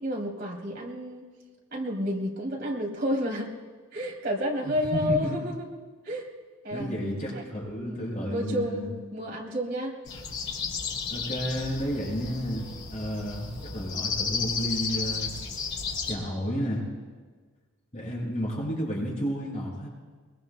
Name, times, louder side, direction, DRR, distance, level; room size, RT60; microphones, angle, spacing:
voice 1, 0.0-1.3 1.7-3.5 3.9-5.7 6.0-6.3 6.6-7.4 7.8-8.0 8.2-10.0, equal, 50° right, -2 dB, 3.2 m, -30 dB
voice 2, 4.6-5.5 6.7-8.9 11.1-12.6 12.9-15.3 16.1-16.8 17.9-19.9, equal, 35° left, -5 dB, 6.0 m, -31 dB
sound 1, 10.1-16.1, left 5 dB, 75° left, 3.5 m, -33 dB
23.0 x 23.0 x 2.2 m, 1.4 s
head